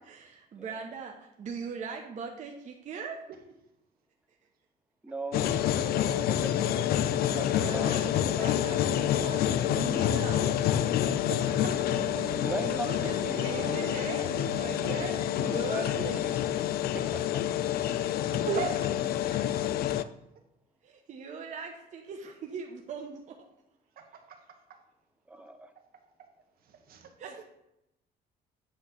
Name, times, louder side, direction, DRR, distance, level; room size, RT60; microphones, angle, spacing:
voice 1, 0.1-3.2 7.5-10.4 12.5-14.3 14.6-16.3 18.3-18.4 19.3-19.8 20.8-23.3 27.2-27.4, right 5 dB, 45° right, 1 dB, 0.9 m, -40 dB
voice 2, 5.0-7.9 8.4-8.5 12.4-13.4 15.5-16.4 16.9-17.0 25.3-25.7, right 2 dB, 10° right, 7 dB, 0.8 m, -39 dB
sound 1, 5.3-20.0, left 11 dB, 65° left, 0.4 m, -28 dB
Guitar, 9.7-17.9, right 11 dB, 85° right, 0.5 m, -45 dB
voice 3, 11.3-11.9 18.5-18.9 24.0-24.4 26.7-27.4, right 7 dB, 60° right, 4 dB, 1.4 m, -36 dB
8.3 x 3.1 x 5.9 m, 0.87 s
cardioid pair, 110°, 17 cm